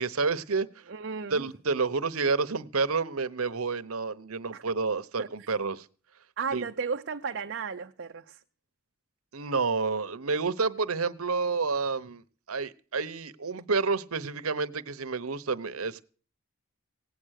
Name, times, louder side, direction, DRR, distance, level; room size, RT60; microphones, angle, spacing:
voice 1, 0.0-0.8 1.3-5.9 6.5-6.7 9.3-16.0, right 4 dB, 75° right, 1.0 m, -29 dB
voice 2, 0.9-1.5 4.5-4.6 5.2-5.5 6.4-8.4, right 5 dB, 55° right, 0.7 m, -34 dB
17.5 x 8.9 x 6.5 m
head